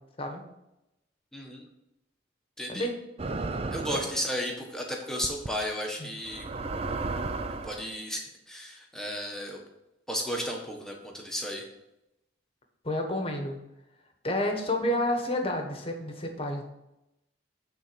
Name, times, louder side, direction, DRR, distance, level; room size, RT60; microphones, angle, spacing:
voice 1, 1.3-1.6 2.6-2.9 3.7-6.5 7.6-9.6 10.1-11.6, equal, 5° left, -1 dB, 1.3 m, -34 dB
sound 1, 3.2-4.2 5.2-5.5 6.3-7.8, right 3 dB, 30° right, 0.5 m, -33 dB
voice 2, 12.8-13.6 14.2-16.6, left 1 dB, 30° left, 3 dB, 1.2 m, -29 dB
9.1 x 4.0 x 6.8 m, 0.89 s
head